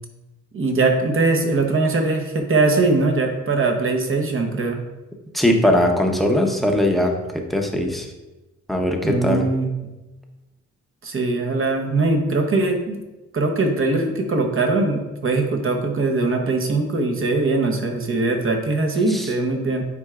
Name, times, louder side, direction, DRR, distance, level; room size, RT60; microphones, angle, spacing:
voice 1, 0.5-4.8 9.0-9.7 11.0-13.0 13.3-19.8, right 3 dB, 45° right, 4 dB, 1.0 m, -21 dB
voice 2, 5.3-8.1 8.7-9.5 19.1-19.3, left 1 dB, ahead, 2 dB, 0.8 m, -20 dB
9.5 x 4.5 x 2.5 m, 1.1 s
cardioid pair, 100°, 29 cm